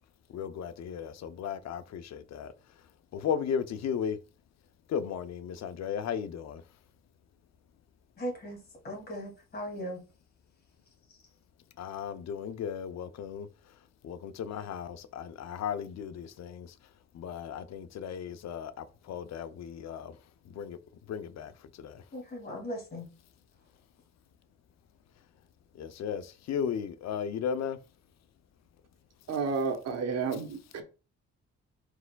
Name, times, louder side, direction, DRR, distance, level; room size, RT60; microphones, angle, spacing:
voice 1, 0.3-2.5 3.1-4.2 4.9-6.6 11.8-13.5 14.0-16.7 17.1-20.2 20.4-20.8 21.1-22.0 25.7-27.8, left 7 dB, 60° left, 0.6 m, -35 dB
voice 2, 8.2-10.0 11.1-11.2 22.1-23.1, equal, 35° left, 2.4 m, -38 dB
voice 3, 29.3-30.8, right 5 dB, 60° right, 1.1 m, -31 dB
4.7 x 4.3 x 2.2 m
cardioid pair, 90°, 30 cm